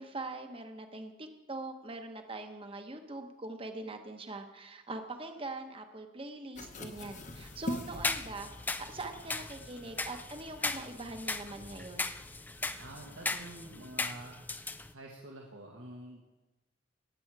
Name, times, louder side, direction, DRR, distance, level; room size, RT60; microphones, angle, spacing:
voice 1, 0.0-8.5 8.8-12.1, right 2 dB, 25° right, 6 dB, 1.0 m, -42 dB
sound 1, 6.5-13.0, left 1 dB, 40° left, 1.0 m, -45 dB
sound 2, 7.0-14.9, left 3 dB, 10° left, 0.3 m, -38 dB
voice 2, 12.7-14.5 14.9-16.3, right 1 dB, 80° right, -1 dB, 1.5 m, -48 dB
18.0 x 7.8 x 4.8 m, 1.1 s
head